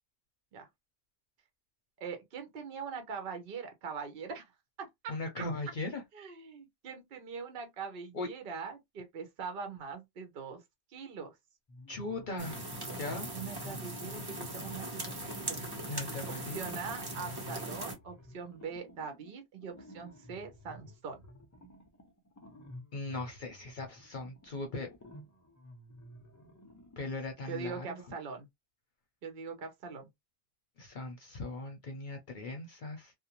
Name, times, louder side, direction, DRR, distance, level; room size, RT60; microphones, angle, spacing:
voice 1, 2.0-4.5 4.8-5.4 6.1-10.6 10.9-11.3 13.3-15.6 16.4-21.2 27.5-28.5 29.2-30.1, right 5 dB, 60° right, 0.8 m, -42 dB
voice 2, 5.1-6.0 8.1-8.3 11.9-12.6 12.9-13.3 15.9-16.7 22.9-24.9 27.0-28.0 30.8-33.1, left 2 dB, 55° left, 0.7 m, -39 dB
sound 1, 11.7-13.0 13.4-27.3, left 1 dB, 30° left, 0.3 m, -53 dB
sound 2, 12.4-17.9, right 1 dB, 25° right, 0.8 m, -40 dB
2.4 x 2.0 x 2.8 m
omnidirectional pair, 1.1 m